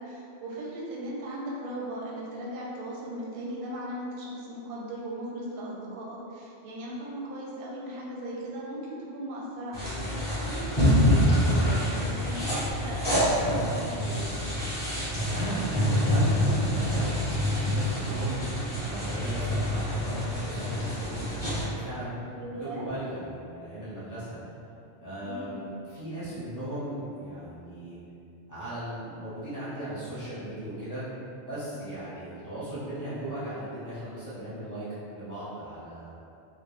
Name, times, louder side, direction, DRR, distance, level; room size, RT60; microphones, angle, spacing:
voice 1, 0.0-14.4 22.3-22.9 25.2-25.6, right 1 dB, 60° right, -5 dB, 0.6 m, -38 dB
sound 1, 9.7-21.6, equal, 25° left, 0.7 m, -26 dB
voice 2, 15.3-18.4 18.8-22.1 22.5-24.4 25.0-27.9 28.5-31.0 31.4-34.9 35.1-36.1, right 1 dB, 20° right, -12 dB, 0.6 m, -37 dB
2.2 x 2.0 x 3.0 m, 2.7 s
omnidirectional pair, 1.2 m